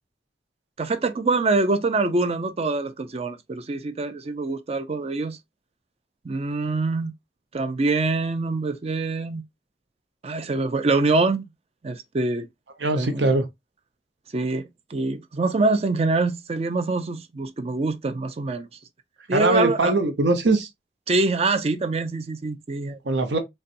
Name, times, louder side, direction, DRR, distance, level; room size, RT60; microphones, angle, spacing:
voice 1, 0.8-5.4 6.2-7.1 7.5-9.4 10.2-11.5 11.8-12.5 13.0-13.3 14.3-18.7 19.3-20.0 21.1-23.0, right 3 dB, 35° right, 0.4 m, -25 dB
voice 2, 12.8-13.4 19.3-20.7 23.0-23.4, right 2 dB, 85° right, 0.8 m, -21 dB
4.0 x 2.2 x 2.5 m
head